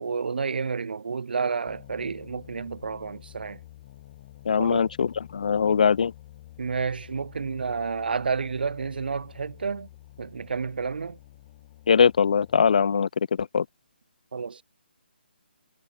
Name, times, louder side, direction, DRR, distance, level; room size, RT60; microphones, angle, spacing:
voice 1, 0.0-3.6 4.6-4.9 6.6-9.9 10.2-11.2 14.3-14.6, right 5 dB, 60° right, 1.3 m, -30 dB
sound 1, 1.7-12.9, left 15 dB, 25° left, 6.0 m, -49 dB
voice 2, 4.5-6.1 11.9-13.1 13.4-13.6, left 6 dB, 45° left, 0.4 m, -21 dB
hypercardioid pair, 170°, 6 cm